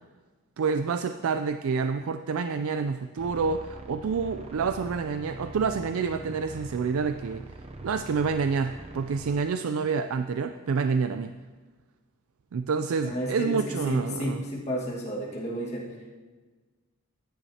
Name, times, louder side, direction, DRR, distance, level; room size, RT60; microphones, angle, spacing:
voice 1, 0.6-7.5 7.8-11.3 12.5-14.4, right 5 dB, 70° right, 9 dB, 0.4 m, -28 dB
sound 1, 3.2-9.4, right 2 dB, 25° right, 0.6 m, -43 dB
voice 2, 13.0-16.1, equal, 30° left, -4 dB, 1.7 m, -32 dB
15.0 x 10.0 x 2.8 m, 1.4 s
head